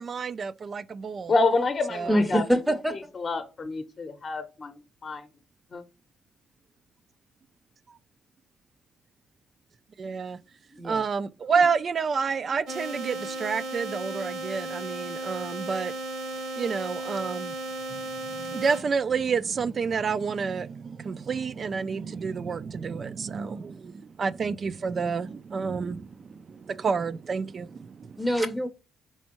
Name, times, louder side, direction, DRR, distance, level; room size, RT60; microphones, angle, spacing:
voice 1, 0.0-1.3 1.9-2.4 10.0-10.4 10.8-15.9 16.6-17.5 17.9-28.2, right 5 dB, 45° right, 0.3 m, -29 dB
voice 2, 1.3-2.4 2.9-5.3 5.7-5.8, left 3 dB, 40° left, 0.7 m, -28 dB
voice 3, 2.1-2.9 10.7-11.0 28.2-28.7, equal, 10° right, 0.6 m, -24 dB
sound 1, 12.7-18.8, right 2 dB, 70° right, 1.1 m, -35 dB
4.3 x 3.5 x 2.9 m
cardioid pair, 90°, 0 cm